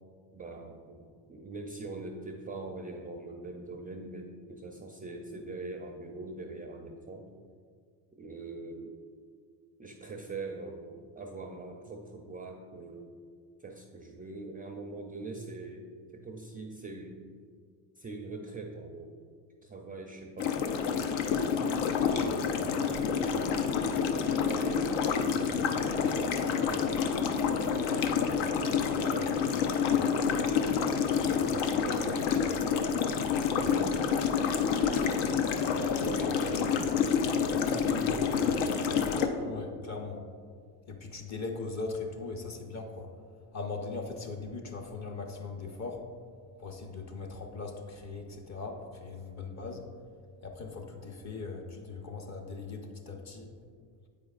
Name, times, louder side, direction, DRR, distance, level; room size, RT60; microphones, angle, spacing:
voice 1, 0.3-7.3 8.2-8.9 9.8-13.1 13.6-15.9 16.1-17.3 18.0-19.1 19.6-20.8 21.1-23.8 24.2-24.9 25.4-26.9 27.4-29.9 30.4-33.3 33.6-34.4 34.9-35.4 35.7-39.3, right 3 dB, 20° right, 2 dB, 0.4 m, -43 dB
sound 1, 20.4-39.3, left 6 dB, 75° left, 0.7 m, -28 dB
voice 2, 39.4-40.2 40.9-43.1 43.5-46.0 46.6-49.8 50.4-53.5, left 3 dB, 35° left, 3 dB, 0.8 m, -39 dB
8.2 x 4.9 x 2.4 m, 2.1 s
supercardioid pair, 85°, 47 cm